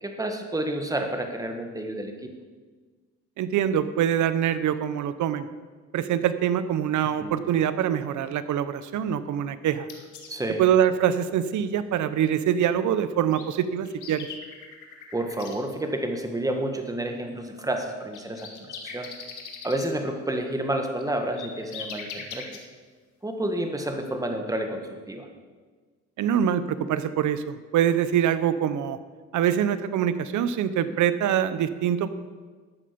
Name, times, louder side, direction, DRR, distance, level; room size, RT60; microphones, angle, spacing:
voice 1, 0.0-2.3 7.0-7.4 10.3-10.6 15.1-19.1 19.6-22.6 23.2-25.3, right 1 dB, 10° right, 4 dB, 1.7 m, -30 dB
voice 2, 3.4-5.5 5.9-9.9 10.6-14.3 26.2-29.0 29.3-32.1, right 9 dB, 75° right, 13 dB, 0.8 m, -24 dB
sound 1, 9.9-10.3 13.0-13.1 13.3-15.6 17.8-19.9 20.8-22.6, left 6 dB, 80° left, 1.9 m, -40 dB
12.5 x 8.8 x 5.2 m, 1.4 s
cardioid pair, 90°, 30 cm